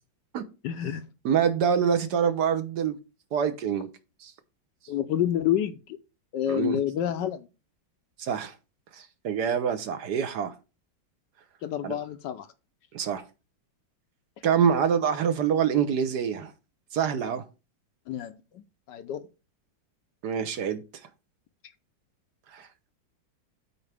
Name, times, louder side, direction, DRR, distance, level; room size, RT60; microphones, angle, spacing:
voice 1, 0.6-1.0 4.9-6.0 6.3-7.5 11.6-12.5 18.1-19.3, left 10 dB, 70° left, 1.2 m, -29 dB
voice 2, 1.2-3.0 3.3-3.9 4.2-4.3 6.5-6.8 8.2-8.6 8.9-10.5 11.8-11.9 12.9-13.2 14.4-16.5 16.9-17.5 20.2-20.8 22.5-22.9, right 7 dB, 65° right, 1.3 m, -26 dB
12.0 x 4.5 x 3.4 m
omnidirectional pair, 2.1 m